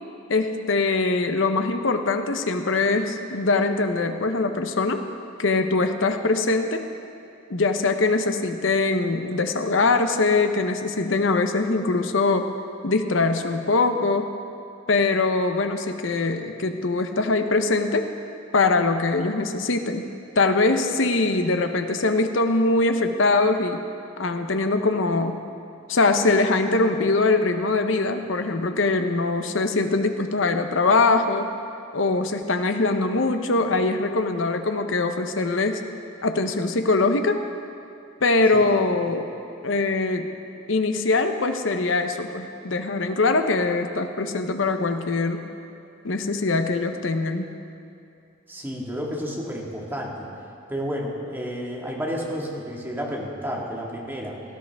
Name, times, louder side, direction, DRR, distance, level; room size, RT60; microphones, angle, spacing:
voice 1, 0.3-5.0 5.4-6.8 7.5-12.5 12.8-14.3 14.9-18.1 18.5-20.0 20.4-23.8 24.2-25.4 25.9-31.5 31.9-35.8 36.2-37.4 38.2-39.2 39.6-40.3 40.7-45.4 46.0-47.5, left 3 dB, 75° left, 7 dB, 0.8 m, -22 dB
voice 2, 48.5-50.3 50.7-54.4, equal, 10° right, -3 dB, 1.8 m, -31 dB
17.5 x 13.0 x 3.5 m, 2.6 s
head